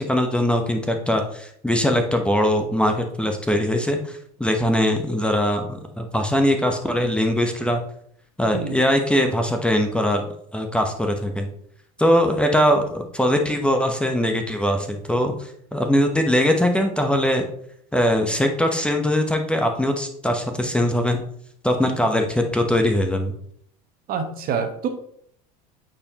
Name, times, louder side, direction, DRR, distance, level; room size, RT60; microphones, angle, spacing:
voice 1, 0.0-7.8 8.4-10.2 10.5-11.5 12.0-15.3 15.7-17.4 17.9-21.2 21.6-23.3, equal, 5° left, 4 dB, 0.8 m, -21 dB
voice 2, 24.1-24.9, right 6 dB, 45° right, 6 dB, 1.0 m, -26 dB
8.5 x 4.4 x 2.9 m, 0.66 s
hypercardioid pair, 90°, 20 cm